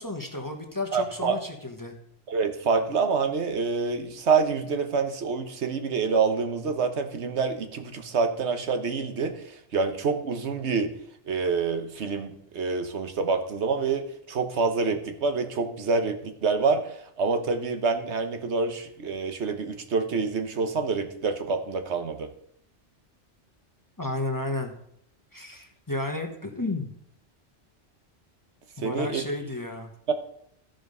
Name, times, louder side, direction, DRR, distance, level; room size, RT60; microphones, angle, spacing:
voice 1, 0.0-1.9 24.0-24.7 25.3-26.9 28.8-29.9, left 2 dB, 20° left, 3 dB, 1.0 m, -32 dB
voice 2, 0.9-1.4 2.3-10.9 11.3-22.3 28.8-29.3 30.1-30.2, right 4 dB, 75° right, 8 dB, 1.2 m, -27 dB
13.5 x 5.1 x 5.3 m, 0.71 s
omnidirectional pair, 1.2 m